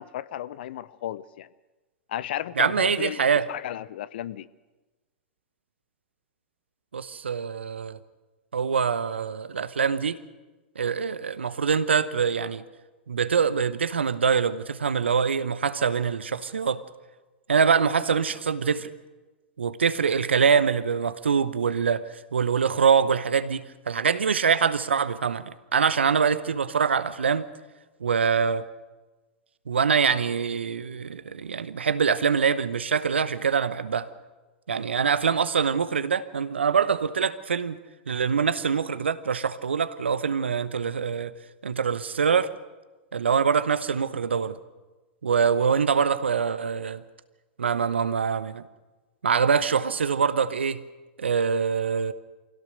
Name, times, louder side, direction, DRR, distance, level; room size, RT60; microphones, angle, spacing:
voice 1, 0.0-1.5 2.1-4.5, left 12 dB, 60° left, 0.7 m, -34 dB
voice 2, 2.6-3.5 6.9-8.0 8.5-10.2 10.8-12.6 13.1-16.8 17.5-18.9 19.6-27.5 28.0-28.6 29.7-34.1 34.7-37.8 38.1-41.3 41.6-42.5 43.1-44.6 45.2-47.0 47.6-48.6 49.2-50.8 51.2-52.1, right 6 dB, 80° right, 0.9 m, -24 dB
24.0 x 16.5 x 6.6 m
figure-of-eight pair, 100°, 6 cm